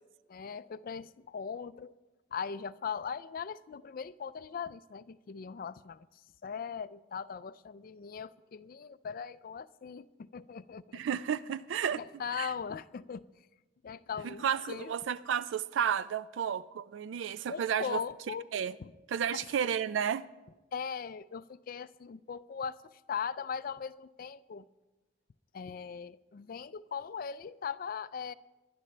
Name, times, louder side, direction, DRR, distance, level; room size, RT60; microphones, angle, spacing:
voice 1, 0.3-1.9 2.3-6.1 6.4-11.0 11.9-13.3 13.8-15.0 17.5-18.5 18.8-18.9 19.3-19.4 20.7-24.7 25.5-28.3, left 6 dB, 50° left, 0.4 m, -39 dB
voice 2, 10.9-12.0 12.4-12.5 14.2-18.0 18.5-18.7 19.1-20.3, right 8 dB, 75° right, 0.4 m, -32 dB
21.5 x 11.0 x 3.3 m
head